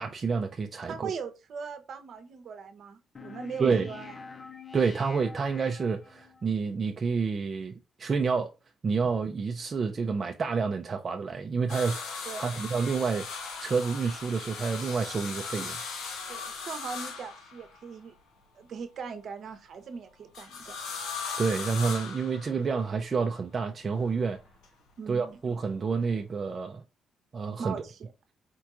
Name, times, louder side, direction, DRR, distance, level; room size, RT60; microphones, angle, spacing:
voice 1, 0.0-1.1 3.6-3.9 4.7-8.5 8.8-12.0 12.4-13.3 13.6-15.8 21.4-24.4 25.1-26.8 27.3-27.7, right 5 dB, 40° right, 0.4 m, -29 dB
voice 2, 0.9-4.1 12.3-12.5 16.3-18.1 18.5-20.8 25.0-25.4 27.6-28.1, right 6 dB, 60° right, 0.8 m, -40 dB
sound 1, 3.1-6.4, left 5 dB, 35° left, 0.4 m, -46 dB
sound 2, 11.7-18.0 20.3-22.8 23.9-24.7 26.1-26.2, left 5 dB, 85° left, 0.8 m, -38 dB
4.4 x 2.9 x 2.4 m
cardioid pair, 90°, 0 cm